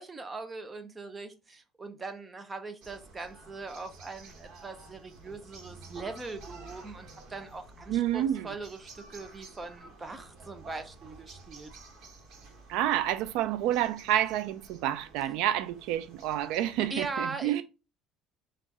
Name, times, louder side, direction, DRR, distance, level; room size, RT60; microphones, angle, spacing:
voice 1, 0.0-11.7 16.9-17.6, right 3 dB, 15° right, 0.6 m, -40 dB
sound 1, 2.8-17.1, right 3 dB, 55° right, 1.3 m, -51 dB
voice 2, 7.9-8.5 12.7-17.6, right 12 dB, 80° right, 0.4 m, -29 dB
4.6 x 2.5 x 4.1 m
cardioid pair, 155°, 0 cm